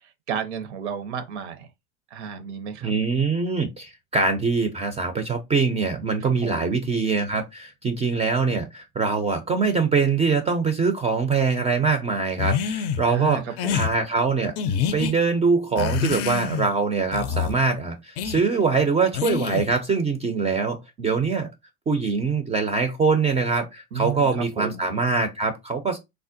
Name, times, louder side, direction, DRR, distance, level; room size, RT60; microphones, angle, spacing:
voice 1, 0.3-1.7 2.1-2.9 6.2-6.8 13.1-14.0 23.9-24.9, right 8 dB, 75° right, 0.7 m, -32 dB
voice 2, 2.8-13.4 13.7-14.5 14.9-21.5 21.9-26.0, right 4 dB, 20° right, 0.4 m, -23 dB
sound 1, 12.4-13.0 13.6-13.9 14.6-15.1 15.8-16.7 17.1-17.6 18.2-18.4 19.1-19.8, left 8 dB, 45° left, 0.4 m, -26 dB
3.4 x 2.1 x 2.5 m
hypercardioid pair, 80°, 35 cm